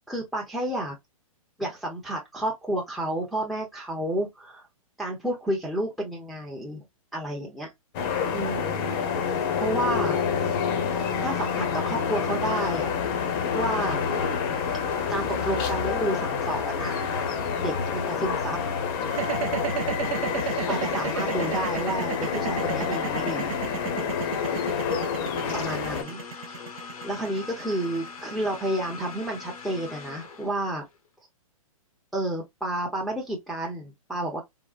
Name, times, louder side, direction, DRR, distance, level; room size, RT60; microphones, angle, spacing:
voice 1, 0.1-0.9 1.6-4.7 5.0-6.8 7.1-7.7 8.3-8.9 9.6-10.2 11.2-12.9 13.5-14.0 15.1-17.0 17.6-18.6 20.7-23.6 25.2-26.2 27.0-30.8 32.1-34.4, right 1 dB, ahead, 0.6 m, -30 dB
sound 1, 7.9-26.0, left 6 dB, 40° left, 0.7 m, -28 dB
sound 2, 19.1-29.2, right 10 dB, 70° right, 0.5 m, -33 dB
sound 3, 25.4-31.0, left 5 dB, 80° left, 1.0 m, -41 dB
3.7 x 2.1 x 2.4 m
hypercardioid pair, 135°, 18 cm